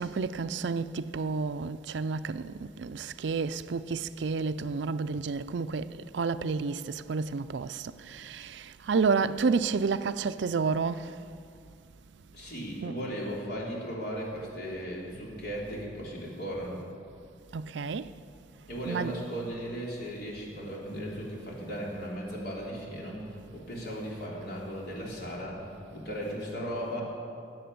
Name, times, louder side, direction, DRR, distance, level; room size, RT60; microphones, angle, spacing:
voice 1, 0.0-5.9 6.1-11.1 12.8-12.9 17.5-18.1 18.9-19.1, right 5 dB, 65° right, 0.4 m, -30 dB
voice 2, 12.3-16.8 18.7-25.6 25.9-27.0, equal, 60° left, 3.6 m, -36 dB
18.0 x 7.9 x 7.8 m
head